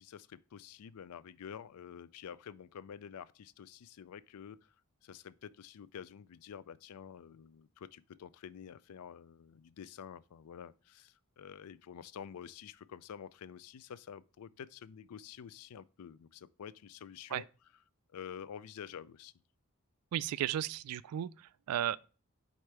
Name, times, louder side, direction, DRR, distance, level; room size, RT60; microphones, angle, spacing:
voice 1, 0.0-4.7 5.0-17.5 18.1-19.3, left 8 dB, 85° left, 0.4 m, -49 dB
voice 2, 20.1-22.0, right 11 dB, 90° right, 0.3 m, -35 dB
5.0 x 4.2 x 4.6 m
head